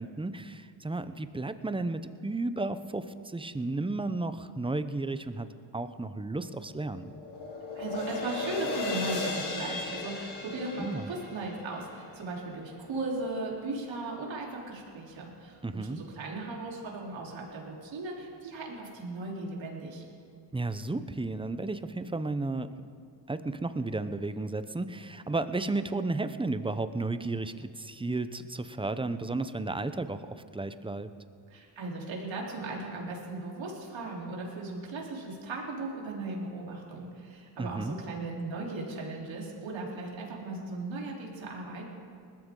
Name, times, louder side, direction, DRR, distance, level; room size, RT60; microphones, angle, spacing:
voice 1, 0.0-5.5 5.7-7.1 10.8-11.1 15.6-16.0 20.5-22.8 23.3-31.1 37.6-38.0, right 2 dB, 10° right, 11 dB, 0.7 m, -33 dB
sound 1, 6.4-12.7, left 3 dB, 75° left, 3.3 m, -37 dB
voice 2, 7.8-20.0 31.5-41.9, right 2 dB, 65° right, -2 dB, 3.8 m, -37 dB
20.0 x 13.5 x 3.9 m, 2.3 s
cardioid pair, 80°, 49 cm